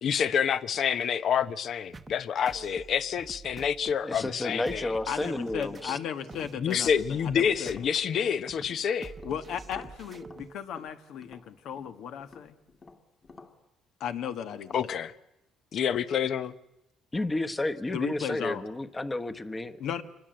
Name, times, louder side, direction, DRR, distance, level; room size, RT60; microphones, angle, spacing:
voice 1, 0.0-4.9 6.6-9.1 14.7-15.1 15.7-16.5, left 7 dB, 55° left, 0.9 m, -28 dB
sound 1, 1.9-10.6, right 4 dB, 25° right, 0.9 m, -47 dB
voice 2, 4.0-6.0 17.1-19.8, left 2 dB, 15° left, 1.2 m, -31 dB
voice 3, 5.1-7.7 9.2-12.6 14.0-14.7 17.9-18.6 19.8-20.0, left 8 dB, 70° left, 1.5 m, -35 dB
Tap, 5.2-8.9 9.2-13.6, left 4 dB, 35° left, 2.4 m, -51 dB
26.0 x 21.0 x 7.8 m
cardioid pair, 120°, 0 cm